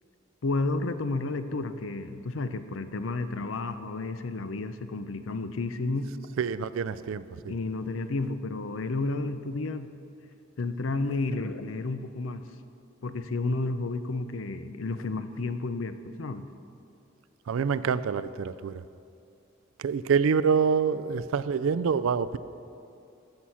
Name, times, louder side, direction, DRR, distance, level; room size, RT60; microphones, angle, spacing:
voice 1, 0.4-6.1 7.5-9.9 10.6-12.5 13.0-16.4, left 3 dB, 75° left, 10 dB, 0.6 m, -31 dB
voice 2, 6.4-7.5 17.5-18.8 19.8-22.4, right 6 dB, 85° right, 15 dB, 0.4 m, -26 dB
14.5 x 6.2 x 5.7 m, 2.6 s
head